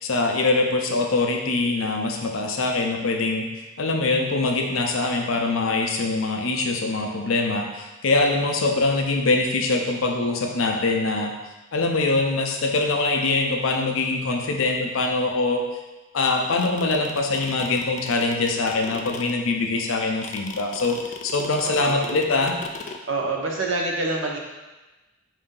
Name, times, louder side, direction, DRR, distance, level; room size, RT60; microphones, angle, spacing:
voice 1, 0.0-11.3 11.7-15.6 16.1-22.6, left 3 dB, 85° left, 2 dB, 0.6 m, -23 dB
sound 1, 16.3-23.0, left 5 dB, 40° left, 0.3 m, -37 dB
voice 2, 21.6-22.1 23.1-24.4, right 2 dB, 65° right, 0 dB, 0.8 m, -26 dB
4.8 x 2.7 x 3.8 m, 1.1 s
head